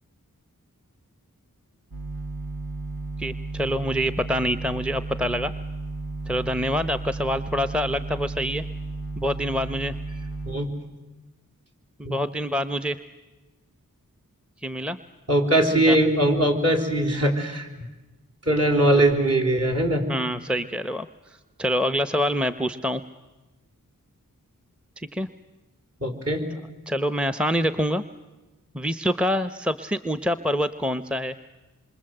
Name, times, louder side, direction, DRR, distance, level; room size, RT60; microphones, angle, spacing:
sound 1, 1.9-10.6, right 2 dB, 75° right, 2.2 m, -33 dB
voice 1, 3.2-5.5 6.3-8.6 9.2-10.0 12.0-13.0 14.6-15.0 15.7-16.0 20.1-21.1 21.6-23.0 25.0-25.3 26.9-28.0 28.7-31.3, equal, 5° right, 12 dB, 0.8 m, -26 dB
voice 2, 15.3-17.7 18.5-20.0 26.0-26.4, right 1 dB, 45° right, 5 dB, 4.3 m, -21 dB
27.0 x 24.5 x 7.9 m, 1.1 s
wide cardioid pair, 40°, 34 cm